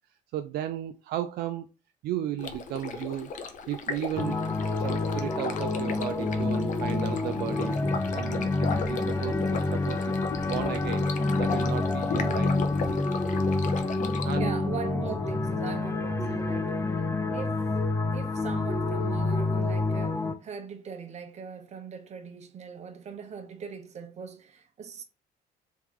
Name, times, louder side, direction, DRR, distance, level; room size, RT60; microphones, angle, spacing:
voice 1, 0.3-1.7 2.0-4.4 4.8-7.8 8.1-10.2 10.5-11.1 11.4-12.6 14.2-14.6 16.2-16.5, right 12 dB, 70° right, 0.4 m, -35 dB
Stream, 2.4-14.4, left 5 dB, 50° left, 0.7 m, -36 dB
sound 1, 4.2-20.3, left 2 dB, 15° left, 0.4 m, -28 dB
voice 2, 14.4-16.9 17.3-17.7 18.1-25.0, right 6 dB, 40° right, 0.9 m, -40 dB
3.6 x 3.0 x 3.7 m
cardioid pair, 110°, 17 cm